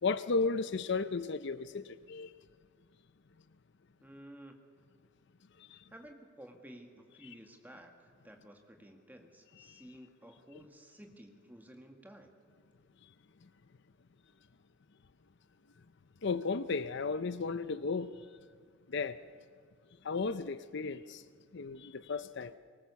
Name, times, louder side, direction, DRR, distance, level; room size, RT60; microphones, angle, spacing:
voice 1, 0.0-2.3 5.6-5.8 9.7-9.8 16.2-18.1 18.9-19.2 20.0-21.2 21.5-22.5, left 4 dB, 55° left, 0.6 m, -34 dB
voice 2, 4.0-4.6 5.7-12.3, right 1 dB, 10° right, 1.9 m, -53 dB
23.0 x 19.5 x 7.0 m
head